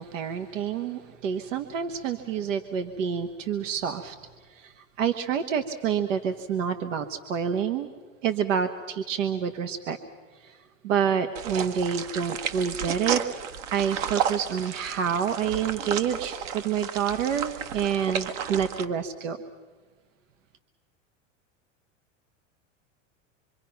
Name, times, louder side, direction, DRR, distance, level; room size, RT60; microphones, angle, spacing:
voice 1, 0.0-4.2 4.5-7.9 8.2-10.0 10.4-10.6 10.8-13.2 13.7-19.4, right 7 dB, 85° right, 7 dB, 1.4 m, -28 dB
sound 1, 11.4-18.9, right 8 dB, 70° right, 1.8 m, -32 dB
26.0 x 25.0 x 5.9 m, 1.5 s
hypercardioid pair, 105°, 38 cm